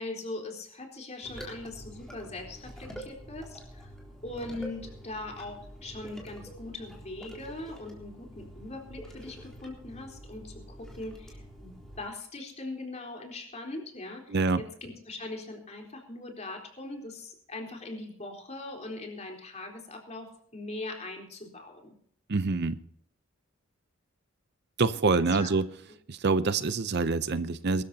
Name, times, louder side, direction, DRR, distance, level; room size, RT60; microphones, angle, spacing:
voice 1, 0.0-3.9 4.2-21.9 25.1-25.5, left 2 dB, 35° left, 2 dB, 4.0 m, -41 dB
sound 1, 1.2-12.1, right 1 dB, 5° left, 3.9 m, -46 dB
voice 2, 14.3-14.6 22.3-22.8 24.8-25.7 26.1-27.8, right 4 dB, 50° right, 13 dB, 0.6 m, -26 dB
23.0 x 13.5 x 2.8 m, 0.67 s
head